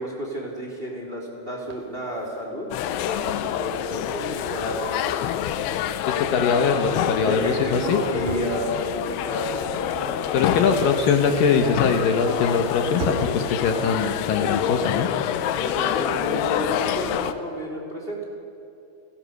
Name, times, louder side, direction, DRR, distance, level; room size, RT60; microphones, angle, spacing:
voice 1, 0.0-2.7 2.9-5.5 7.2-10.2 15.6-18.3, equal, 15° right, 0 dB, 3.1 m, -31 dB
sound 1, 0.7-0.8 1.6-2.5 3.1-3.6 4.3-4.6 5.1-5.6 6.0-6.2 6.6-6.7 7.0-8.5 9.0-10.7 11.1-11.2 11.6-12.7 12.9-13.2 13.8-14.2 14.7-15.2 15.4-16.4 16.7-17.4, right 3 dB, 55° right, 3.8 m, -40 dB
sound 2, 2.7-17.3, left 11 dB, 85° left, 2.9 m, -27 dB
voice 2, 6.1-8.0 10.3-15.1, left 5 dB, 70° left, 4 dB, 2.7 m, -22 dB
30.0 x 18.0 x 6.6 m, 2.6 s
omnidirectional pair, 4.5 m